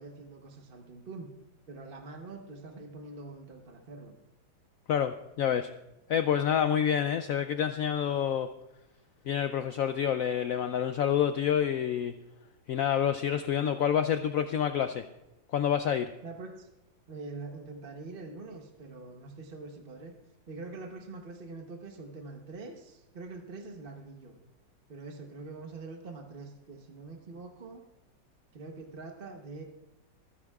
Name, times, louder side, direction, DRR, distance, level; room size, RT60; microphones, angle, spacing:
voice 1, 0.0-1.3 1.7-4.1 16.2-16.7 17.1-20.1 20.5-24.4 24.9-27.8 28.5-29.6, right 3 dB, 35° right, 3 dB, 1.0 m, -44 dB
voice 2, 4.9-5.7 6.1-8.5 9.3-12.1 12.7-15.0 15.5-16.1, left 9 dB, 80° left, 9 dB, 0.7 m, -28 dB
26.0 x 9.9 x 2.4 m, 0.98 s
omnidirectional pair, 2.0 m